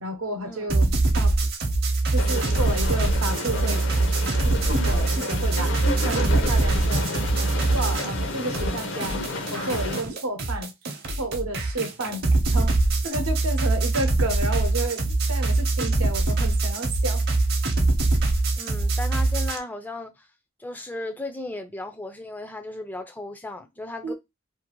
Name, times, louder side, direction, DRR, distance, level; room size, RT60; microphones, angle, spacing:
voice 1, 0.0-1.4 2.1-3.8 4.4-5.7 6.0-7.1 7.7-9.2 9.5-10.7 11.1-12.7 13.0-17.2 24.0-24.1, right 2 dB, 80° right, 0.8 m, -31 dB
sound 1, 0.7-8.3 8.5-19.6, right 2 dB, 50° right, 0.7 m, -23 dB
sound 2, 2.1-10.0, left 2 dB, 60° left, 0.6 m, -31 dB
voice 2, 18.6-20.3 20.6-24.1, left 2 dB, 10° left, 0.3 m, -35 dB
2.6 x 2.4 x 2.9 m
head